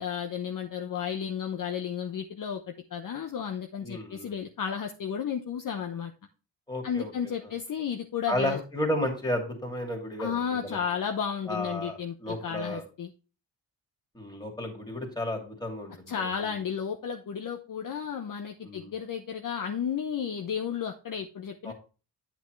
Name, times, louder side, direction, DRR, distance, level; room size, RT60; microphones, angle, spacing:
voice 1, 0.0-6.1 6.8-8.6 10.2-13.1 16.1-21.7, left 7 dB, 45° left, 4 dB, 0.8 m, -33 dB
voice 2, 3.8-4.3 6.7-7.3 8.3-10.8 11.5-11.9 12.2-12.8 14.1-16.3 18.6-18.9 21.6-21.7, left 1 dB, 10° left, 1 dB, 2.6 m, -32 dB
8.1 x 6.0 x 3.1 m, 0.34 s
supercardioid pair, 55°, 46 cm